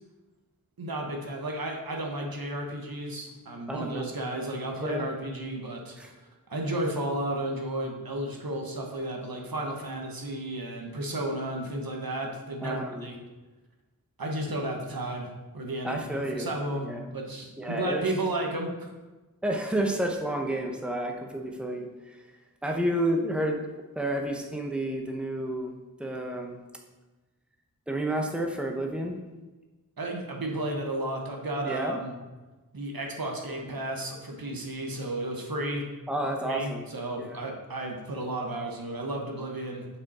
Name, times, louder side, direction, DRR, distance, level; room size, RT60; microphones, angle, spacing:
voice 1, 0.8-6.2 6.5-13.1 14.2-16.0 16.3-18.7 30.0-32.1 32.7-35.8 36.4-39.9, right 1 dB, 75° right, 1 dB, 1.2 m, -33 dB
voice 2, 3.7-4.1 4.8-5.0 6.0-6.1 12.6-13.1 15.8-16.5 16.8-17.1 17.6-18.1 19.4-22.2 22.6-23.6 24.0-25.7 26.0-26.6 27.9-29.1 31.7-32.0 36.1-36.9 37.2-37.4, right 1 dB, 5° right, 2 dB, 0.9 m, -30 dB
6.9 x 5.4 x 4.2 m, 1.2 s
wide cardioid pair, 60°, 35 cm